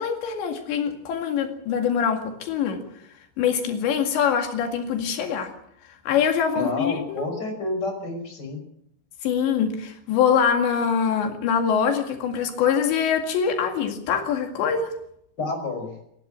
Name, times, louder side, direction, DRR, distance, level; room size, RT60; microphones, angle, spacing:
voice 1, 0.0-2.8 3.4-5.5 6.1-7.3 9.2-14.9, left 7 dB, 85° left, 4 dB, 4.4 m, -24 dB
voice 2, 6.5-8.6 15.4-15.9, left 3 dB, 25° left, 4 dB, 5.6 m, -29 dB
27.5 x 11.5 x 8.8 m, 0.74 s
omnidirectional pair, 5.0 m